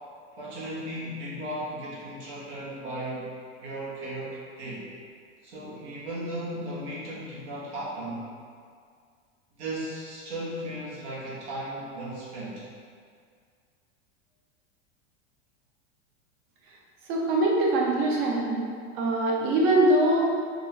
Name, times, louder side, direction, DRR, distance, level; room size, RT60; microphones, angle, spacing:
voice 1, 0.4-3.3 3.6-4.9 5.4-8.2 9.6-12.7, right 1 dB, 80° right, -7 dB, 1.4 m, -36 dB
voice 2, 17.1-18.6 19.0-20.2, right 1 dB, 50° right, -3 dB, 0.8 m, -22 dB
3.8 x 2.5 x 3.3 m, 2.1 s
supercardioid pair, 170°, 33 cm